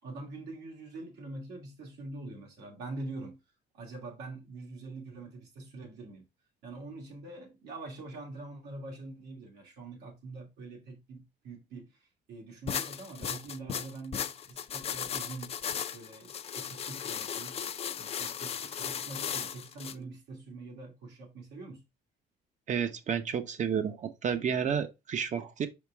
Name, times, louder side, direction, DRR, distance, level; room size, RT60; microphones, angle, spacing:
voice 1, 0.0-3.4 3.7-6.3 6.6-12.0 12.3-15.6 15.9-17.6 18.0-21.8, right 2 dB, 80° right, 2.7 m, -44 dB
sound 1, 12.7-19.9, left 8 dB, 35° left, 0.5 m, -36 dB
voice 2, 22.7-25.7, right 7 dB, 45° right, 1.0 m, -31 dB
5.2 x 5.1 x 3.6 m
cardioid pair, 110°, 17 cm